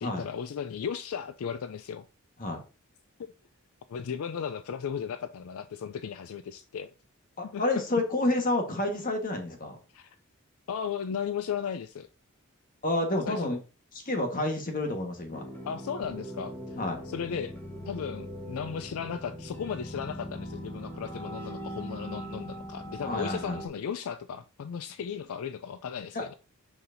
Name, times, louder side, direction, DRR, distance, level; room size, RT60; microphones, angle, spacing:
voice 1, 0.0-2.0 3.2-3.3 3.9-6.9 7.5-7.6 9.9-10.2 10.7-12.1 13.3-13.6 15.7-16.5 17.1-17.5 17.9-26.3, left 7 dB, 75° left, 0.4 m, -36 dB
voice 2, 7.4-9.8 12.8-13.6 14.0-15.4 16.8-17.0 23.0-23.6 26.1-26.3, left 2 dB, 40° left, 1.4 m, -29 dB
sound 1, 15.3-23.7, equal, 10° left, 1.0 m, -40 dB
6.8 x 5.7 x 2.7 m
head